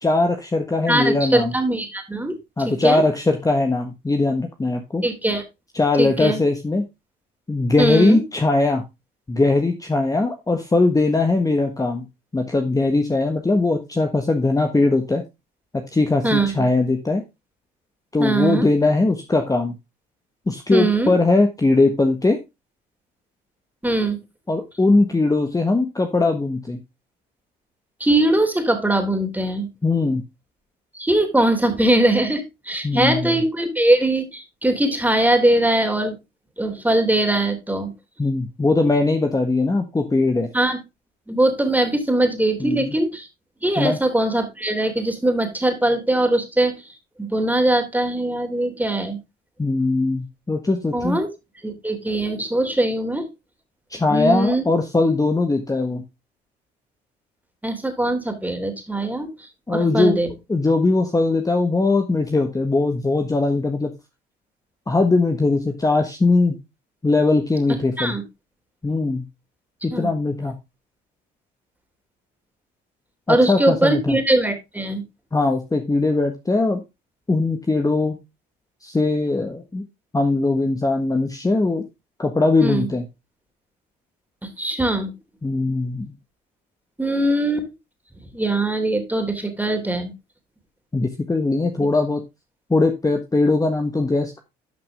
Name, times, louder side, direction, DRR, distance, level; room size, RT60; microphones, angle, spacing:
voice 1, 0.0-1.5 2.6-5.0 5.7-6.8 7.5-8.8 9.3-12.1 12.3-15.2 15.9-17.2 18.1-19.7 20.5-22.4 24.5-26.8 29.8-30.2 32.8-33.3 38.2-40.5 42.6-42.9 43.8-44.0 49.6-51.2 53.9-56.0 59.7-60.2 60.5-63.9 64.9-66.6 67.0-68.2 68.8-69.2 69.8-70.5 73.3-74.2 75.3-76.8 77.3-78.2 78.8-79.8 80.1-81.8 82.2-83.0 85.4-86.1 90.9-92.2 92.7-94.4, left 3 dB, 15° left, 5 dB, 1.4 m, -20 dB
voice 2, 0.9-2.3 2.6-3.0 5.0-5.4 6.0-6.4 7.8-8.2 16.2-16.6 18.2-18.7 20.7-21.1 23.8-24.2 28.0-29.7 30.9-36.2 36.6-37.9 40.5-40.8 41.3-43.3 43.6-49.2 50.9-51.3 51.6-53.3 54.1-54.6 57.6-60.3 68.0-68.2 69.9-70.1 73.3-75.0 82.6-82.9 84.4-85.1 87.0-87.7 88.3-90.1, right 1 dB, 10° right, 5 dB, 3.1 m, -21 dB
12.0 x 5.9 x 3.6 m, 0.23 s
supercardioid pair, 75°, 21 cm